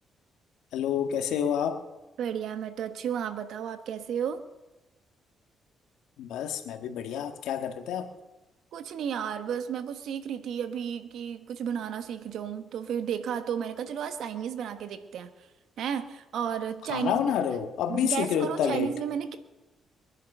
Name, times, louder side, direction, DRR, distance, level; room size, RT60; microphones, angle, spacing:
voice 1, 0.7-1.8 6.2-8.1 16.9-18.9, left 8 dB, 85° left, 7 dB, 1.7 m, -28 dB
voice 2, 2.2-4.4 8.7-15.5 15.8-17.4 17.9-19.4, right 8 dB, 75° right, 10 dB, 1.3 m, -33 dB
23.0 x 10.5 x 5.6 m, 1.0 s
cardioid pair, 90°, 0 cm